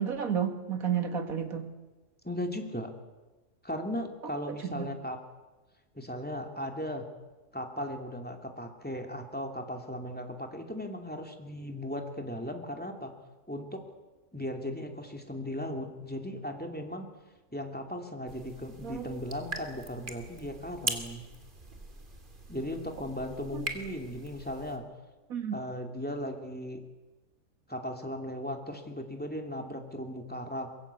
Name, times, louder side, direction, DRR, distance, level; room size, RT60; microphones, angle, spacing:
voice 1, 0.0-1.7 4.5-4.9 18.8-19.2 23.5-23.7 25.3-25.6, right 7 dB, 65° right, 7 dB, 2.3 m, -32 dB
voice 2, 2.2-2.9 3.6-5.2 5.9-7.1 7.5-13.1 13.5-13.8 14.3-17.1 17.5-21.2 22.5-24.8 25.5-26.8 27.7-30.7, equal, 5° left, 3 dB, 2.7 m, -37 dB
sound 1, 18.3-24.8, right 2 dB, 30° right, 2.6 m, -41 dB
23.0 x 23.0 x 8.4 m, 1.2 s
omnidirectional pair, 1.7 m